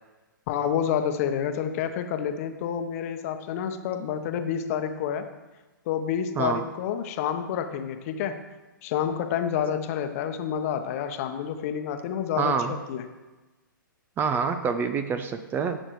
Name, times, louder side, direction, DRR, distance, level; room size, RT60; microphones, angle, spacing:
voice 1, 0.5-5.2 5.9-8.4 8.8-13.0, left 8 dB, 45° left, 7 dB, 0.9 m, -29 dB
voice 2, 6.3-6.7 12.4-12.7 14.2-15.8, right 6 dB, 20° right, 10 dB, 0.4 m, -26 dB
16.5 x 6.5 x 3.1 m, 1.2 s
hypercardioid pair, 130°, 11 cm